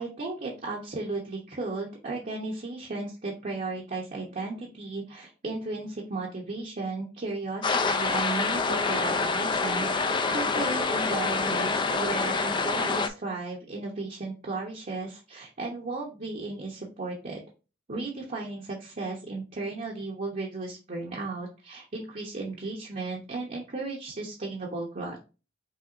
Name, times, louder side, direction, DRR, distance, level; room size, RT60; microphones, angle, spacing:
voice 1, 0.0-17.4 17.9-25.2, right 3 dB, 45° right, -2 dB, 0.8 m, -35 dB
sound 1, 7.6-13.1, left 4 dB, 25° left, 0.4 m, -26 dB
5.7 x 3.3 x 2.5 m, 0.33 s
head